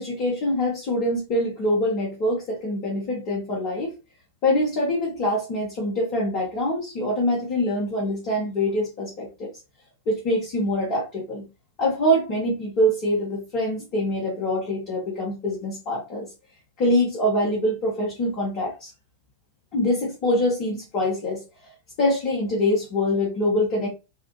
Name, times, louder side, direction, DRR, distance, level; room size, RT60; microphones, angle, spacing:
voice 1, 0.0-3.9 4.4-9.5 10.0-11.5 11.8-16.3 16.8-18.9 19.7-21.4 22.0-23.9, left 1 dB, 40° left, -3 dB, 1.5 m, -24 dB
6.3 x 2.5 x 3.0 m, 0.29 s
figure-of-eight pair, 90°, 0 cm